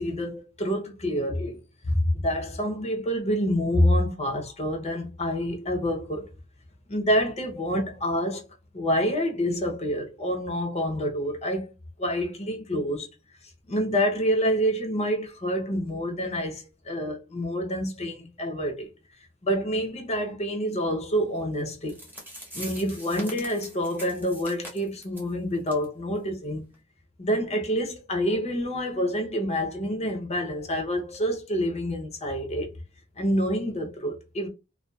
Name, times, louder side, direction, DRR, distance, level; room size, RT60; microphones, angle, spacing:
voice 1, 0.0-6.3 6.9-8.5 8.7-11.7 12.0-13.1 13.7-18.9 19.4-22.0 22.5-26.6 27.2-32.7 33.2-34.5, equal, 30° left, 0.6 m, -27 dB
sound 1, 21.6-21.7 21.9-25.3 25.7-25.8 26.1-26.2 26.7-26.8, equal, 10° right, 0.8 m, -42 dB
2.6 x 2.3 x 2.2 m
head